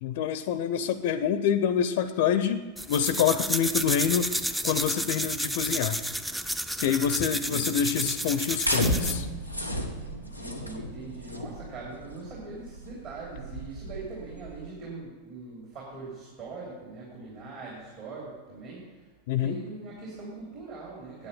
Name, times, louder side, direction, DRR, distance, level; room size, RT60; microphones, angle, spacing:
voice 1, 0.0-4.4 4.6-6.0 6.8-9.3 19.3-19.6, left 8 dB, 50° left, 13 dB, 0.5 m, -26 dB
sound 1, 2.8-9.2, equal, 5° right, 0.4 m, -31 dB
voice 2, 7.4-7.8 10.2-19.1 19.4-21.3, right 3 dB, 45° right, -5 dB, 3.0 m, -41 dB
sound 2, 8.6-14.7, equal, 90° right, 1.0 m, -33 dB
9.5 x 8.7 x 5.4 m, 1.4 s
figure-of-eight pair, 90°, 0 cm